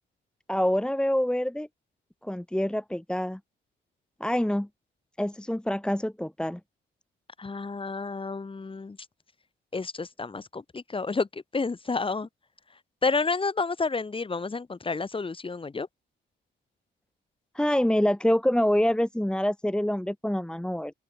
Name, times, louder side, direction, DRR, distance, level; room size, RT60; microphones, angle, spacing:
voice 1, 0.5-1.7 2.2-3.4 4.2-4.7 5.2-6.6 17.6-20.9, equal, 5° left, 1.7 m, -26 dB
voice 2, 7.4-9.0 9.7-12.3 13.0-15.9, left 4 dB, 25° left, 3.6 m, -30 dB
open air
cardioid pair, 90°, 20 cm